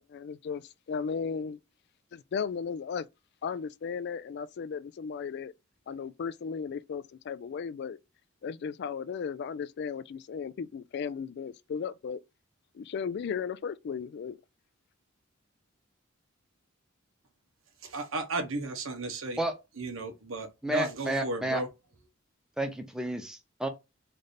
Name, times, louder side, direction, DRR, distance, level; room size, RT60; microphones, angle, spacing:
voice 1, 0.1-0.6 0.9-1.6 2.1-3.1 3.4-5.5 5.9-8.0 8.4-12.2 12.7-14.4, left 6 dB, 55° left, 0.3 m, -35 dB
voice 2, 17.8-19.4 19.8-21.7, right 3 dB, 75° right, 0.9 m, -34 dB
voice 3, 20.6-21.6 22.6-23.7, right 1 dB, 5° right, 0.6 m, -31 dB
3.3 x 2.5 x 4.0 m
head